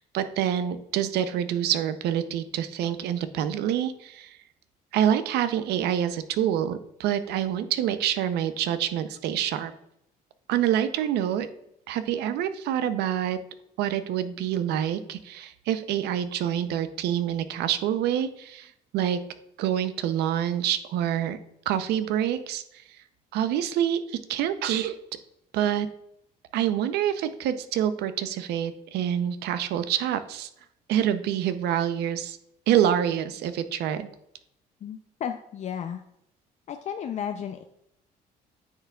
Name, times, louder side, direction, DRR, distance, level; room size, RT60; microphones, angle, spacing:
voice 1, 0.0-4.4 4.9-9.7 10.5-11.5 11.9-13.4 13.8-19.2 19.6-21.4 21.7-22.6 23.3-25.0 25.5-25.9 26.5-30.5 30.9-32.4 32.7-34.1, right 10 dB, 80° right, 11 dB, 0.6 m, -26 dB
voice 2, 34.8-36.0 36.7-37.6, left 8 dB, 45° left, 6 dB, 0.4 m, -33 dB
9.5 x 5.7 x 2.3 m, 0.78 s
cardioid pair, 110°, 17 cm